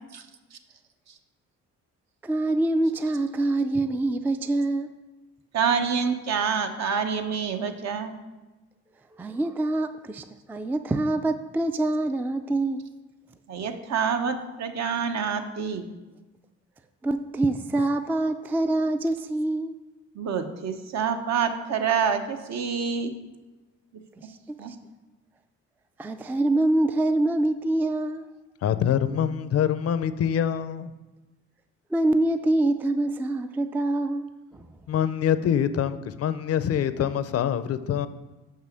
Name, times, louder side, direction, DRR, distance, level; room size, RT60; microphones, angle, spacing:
voice 1, 2.2-4.9 9.2-12.9 17.0-19.7 24.2-24.8 26.0-28.2 31.9-34.7, right 2 dB, 5° right, 0.3 m, -25 dB
voice 2, 5.5-8.1 13.5-15.9 20.2-23.1 24.6-24.7, right 6 dB, 60° right, 0.9 m, -27 dB
voice 3, 28.6-30.9 34.9-38.1, left 9 dB, 55° left, 0.5 m, -25 dB
5.9 x 5.5 x 6.3 m
cardioid pair, 90°, 30 cm